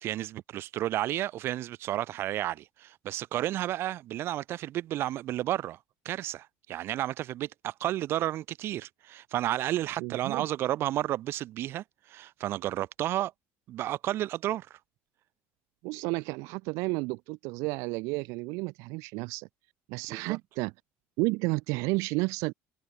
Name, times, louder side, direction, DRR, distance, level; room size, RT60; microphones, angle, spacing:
voice 1, 0.0-5.8 6.0-13.3 13.7-14.8 20.1-20.4, right 13 dB, 50° right, 1.4 m, -32 dB
voice 2, 10.0-10.5 15.8-19.5 19.9-20.7 21.2-22.5, right 26 dB, 75° right, 0.7 m, -31 dB
cardioid pair, 155°, 5 cm